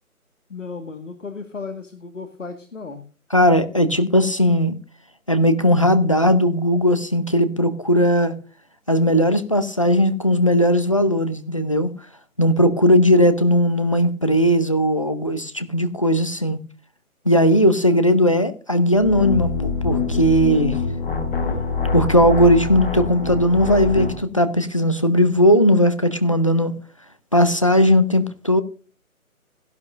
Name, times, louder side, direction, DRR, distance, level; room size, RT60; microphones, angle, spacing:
voice 1, 0.5-3.0, left 4 dB, 55° left, 1.8 m, -34 dB
voice 2, 3.3-4.7 5.3-8.3 8.9-11.9 12.4-16.6 17.3-20.8 21.9-26.7 27.3-28.6, equal, 25° left, 0.7 m, -17 dB
sound 1, 19.0-24.2, left 5 dB, 40° left, 2.4 m, -25 dB
17.0 x 13.0 x 2.5 m
figure-of-eight pair, 150°, 44 cm